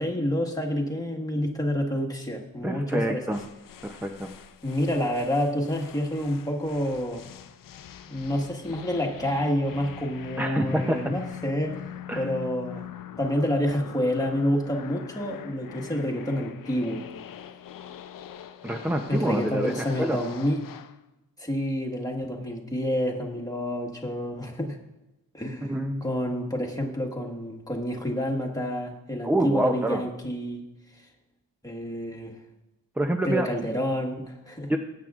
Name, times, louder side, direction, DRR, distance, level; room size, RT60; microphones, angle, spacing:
voice 1, 0.0-3.4 4.6-7.3 8.1-11.9 12.1-12.9 13.2-17.1 19.1-20.6 21.4-24.8 25.3-30.6 31.0-31.1 31.6-32.4 33.2-34.7, equal, 10° left, 0 dB, 1.5 m, -28 dB
voice 2, 2.6-3.4 3.8-4.3 10.4-11.1 12.1-12.3 18.6-20.2 25.6-26.0 29.2-30.0 33.0-33.5 34.7-34.8, right 1 dB, 5° right, 5 dB, 0.5 m, -27 dB
sound 1, 3.3-21.0, left 10 dB, 65° left, 0.6 m, -43 dB
19.5 x 8.6 x 2.5 m, 0.96 s
wide cardioid pair, 120°, 36 cm